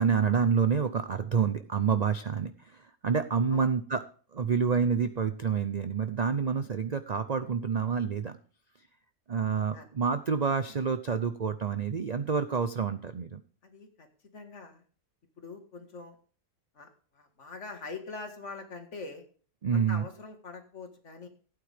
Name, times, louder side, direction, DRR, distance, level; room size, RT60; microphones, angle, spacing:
voice 1, 0.0-2.5 3.0-4.0 4.3-8.4 9.3-13.4 19.6-20.0, right 6 dB, 50° right, 9 dB, 0.4 m, -28 dB
voice 2, 13.6-14.1 14.3-14.8 15.4-16.2 16.7-19.2 19.7-21.3, left 3 dB, 50° left, 5 dB, 2.1 m, -43 dB
15.5 x 9.0 x 3.5 m, 0.42 s
omnidirectional pair, 1.6 m